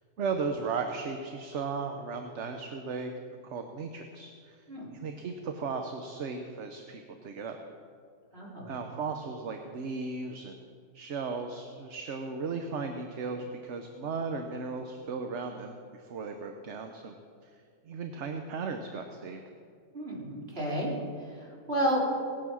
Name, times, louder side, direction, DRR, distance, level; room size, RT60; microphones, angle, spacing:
voice 1, 0.2-3.1 3.4-4.6 4.9-7.6 8.7-10.6 10.9-17.2 17.4-17.5 17.8-19.4, right 4 dB, 55° right, 5 dB, 1.1 m, -36 dB
voice 2, 8.3-8.7 19.9-20.9 21.2-22.0, equal, 40° right, -5 dB, 3.8 m, -31 dB
18.5 x 8.9 x 6.3 m, 2.2 s
omnidirectional pair, 1.5 m